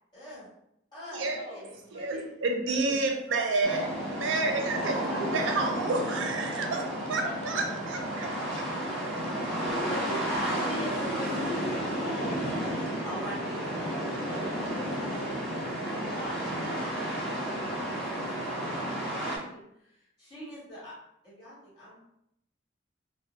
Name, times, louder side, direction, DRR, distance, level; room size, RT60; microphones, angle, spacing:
voice 1, 0.1-0.5 0.9-2.4 3.6-3.7 4.7-5.7 9.6-11.9 13.0-14.1 17.6-20.9 21.2-22.0, equal, 25° left, -10 dB, 1.3 m, -41 dB
voice 2, 1.2-1.8 3.0-3.4 3.7-4.1 6.6-6.8 7.1-7.6 9.4-10.1 10.4-11.5 12.0-13.1 14.3-15.7 16.1-17.0, left 1 dB, 60° left, -6 dB, 0.9 m, -44 dB
voice 3, 1.9-3.9 4.1-6.8 7.1-8.7, right 3 dB, 85° right, 3 dB, 0.5 m, -30 dB
sound 1, 3.6-19.4, right 1 dB, ahead, 0.5 m, -32 dB
2.2 x 2.0 x 2.7 m, 0.76 s
head